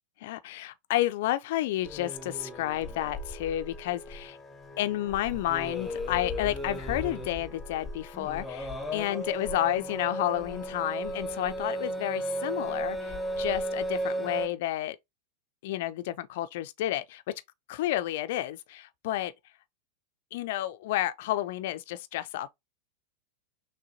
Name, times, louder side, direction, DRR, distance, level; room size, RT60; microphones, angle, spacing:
voice 1, 0.2-4.4 4.8-15.0 15.6-17.2 17.7-19.3 20.3-22.5, left 14 dB, 50° left, 0.4 m, -31 dB
sound 1, 1.8-14.5, equal, 10° left, 0.7 m, -35 dB
6.1 x 2.2 x 2.8 m
figure-of-eight pair, 90°, 0 cm